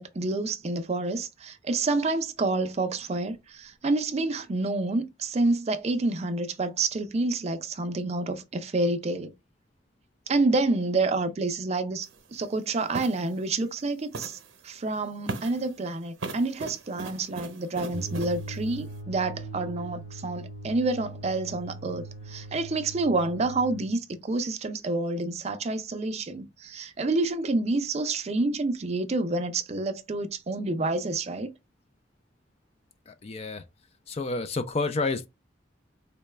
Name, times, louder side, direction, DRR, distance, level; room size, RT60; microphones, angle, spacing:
voice 1, 0.0-9.3 10.3-14.4 14.6-31.5, right 2 dB, 35° right, 0.4 m, -28 dB
sound 1, 12.0-12.2 12.9-13.3 14.1-14.5 15.3-15.7 16.2-18.4, right 3 dB, 85° right, 0.7 m, -37 dB
sound 2, 17.9-23.9, right 2 dB, 50° left, 0.9 m, -40 dB
voice 2, 33.1-33.6 34.1-35.3, left 3 dB, 30° left, 0.3 m, -29 dB
4.0 x 2.2 x 3.2 m
head